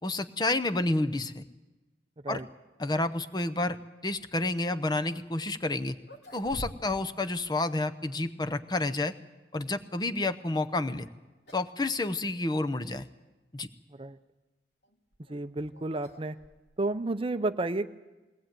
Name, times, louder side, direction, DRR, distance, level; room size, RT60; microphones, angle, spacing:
voice 1, 0.0-1.4 2.3-2.4 2.8-3.8 4.0-6.0 6.3-9.1 9.5-11.1 11.5-13.0 13.5-13.7, left 2 dB, 25° left, 9 dB, 0.8 m, -30 dB
sound 1, 6.0-7.1 7.4-7.5 8.3-9.1 10.9-11.1 11.5-11.8 12.1-12.2 12.9-13.0 14.8-16.9, equal, 65° left, 3.1 m, -47 dB
voice 2, 15.3-16.4 16.8-17.9, right 2 dB, 30° right, 11 dB, 0.7 m, -31 dB
21.5 x 18.5 x 9.1 m, 1.1 s
head